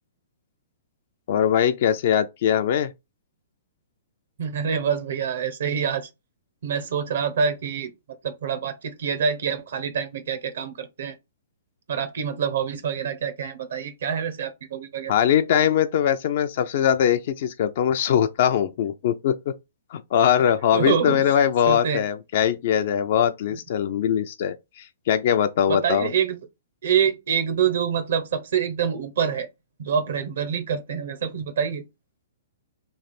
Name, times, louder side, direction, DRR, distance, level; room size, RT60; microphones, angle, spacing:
voice 1, 1.3-2.9 15.1-19.5 19.9-26.1, left 9 dB, 50° left, 0.4 m, -21 dB
voice 2, 4.4-6.1 6.6-7.9 8.2-11.1 11.9-15.1 20.7-21.2 21.7-22.0 25.7-26.4 26.8-29.5 29.8-31.8, right 7 dB, 70° right, 0.7 m, -26 dB
3.2 x 2.4 x 4.1 m
hypercardioid pair, 150°, 0 cm